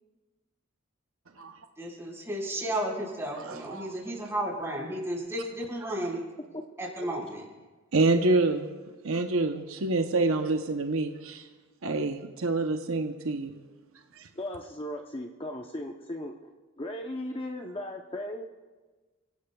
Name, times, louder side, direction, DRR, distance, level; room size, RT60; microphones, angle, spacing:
voice 1, 1.8-6.2 6.8-7.4, right 1 dB, 15° right, -4 dB, 4.5 m, -33 dB
voice 2, 3.4-3.9 7.9-8.7 9.0-11.5 11.8-13.6 14.1-14.3, right 2 dB, 70° right, 5 dB, 0.8 m, -27 dB
voice 3, 14.3-16.3 16.8-18.4, left 1 dB, 25° left, 2 dB, 0.7 m, -36 dB
30.0 x 16.5 x 2.3 m, 1.3 s
head